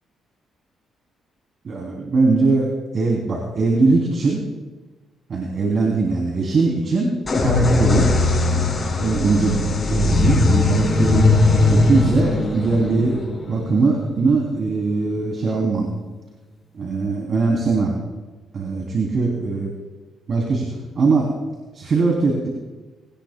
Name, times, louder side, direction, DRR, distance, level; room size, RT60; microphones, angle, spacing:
voice 1, 1.6-2.7 2.9-4.4 5.3-7.1 7.4-8.1 9.0-9.6 9.9-11.3 11.7-13.2 13.5-15.9 16.7-17.9 18.5-19.7 20.3-20.7 20.9-21.3 21.7-22.5, right 3 dB, 50° right, -1 dB, 2.9 m, -20 dB
sound 1, 7.3-14.8, left 3 dB, 30° left, 4.7 m, -19 dB
20.0 x 18.5 x 2.2 m, 1.3 s
cardioid pair, 90°, 0 cm